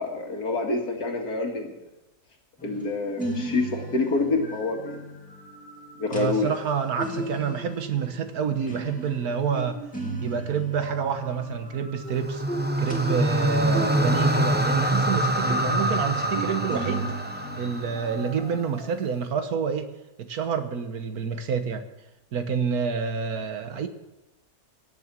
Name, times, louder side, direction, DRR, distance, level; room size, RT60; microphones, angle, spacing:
voice 1, 0.0-1.7 2.6-5.0 6.0-6.5, left 3 dB, 85° left, 2 dB, 2.5 m, -27 dB
sound 1, 2.6-15.1 15.3-18.9, right 1 dB, 5° left, 2.4 m, -36 dB
voice 2, 6.1-9.8 10.2-12.4 12.8-17.1 17.6-19.9 20.2-21.9 22.3-23.9, right 6 dB, 75° right, 8 dB, 1.7 m, -28 dB
sound 2, 12.1-18.4, right 1 dB, 10° right, 0.6 m, -25 dB
17.0 x 7.0 x 7.5 m, 0.97 s
omnidirectional pair, 1.6 m